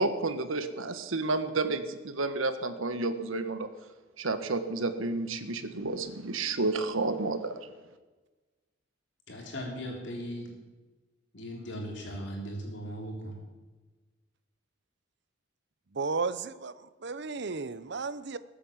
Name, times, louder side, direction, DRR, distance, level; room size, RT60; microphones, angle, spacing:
voice 1, 0.0-3.7 4.2-7.5, right 3 dB, 85° right, 1.4 m, -30 dB
voice 2, 9.3-10.5 11.3-13.4, equal, 60° left, 3.6 m, -38 dB
voice 3, 15.9-18.4, right 4 dB, 60° right, 0.7 m, -34 dB
21.0 x 8.5 x 7.4 m
head